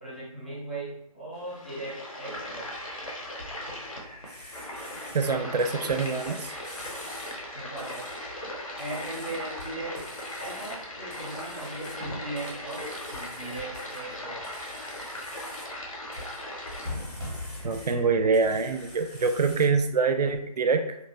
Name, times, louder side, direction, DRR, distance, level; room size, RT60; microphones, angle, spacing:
voice 1, 0.0-2.8 7.5-8.0 8.7-10.0 10.4-14.5, right 2 dB, 15° left, -8 dB, 0.4 m, -38 dB
sound 1, 1.3-16.9, left 1 dB, 55° left, 0.8 m, -39 dB
sound 2, 2.2-19.9, left 1 dB, 10° right, 0.7 m, -44 dB
sound 3, 4.2-5.3 5.6-7.4 7.8-8.2 8.8-9.7 9.9-10.8 11.1-12.0 12.3-14.0 14.4-15.7 16.1-18.0 18.3-19.7, left 1 dB, 80° left, 1.1 m, -48 dB
voice 2, 5.1-6.5 17.6-21.0, right 4 dB, 90° right, 8 dB, 0.4 m, -25 dB
2.8 x 2.3 x 2.7 m, 0.76 s
figure-of-eight pair, 170°, 20 cm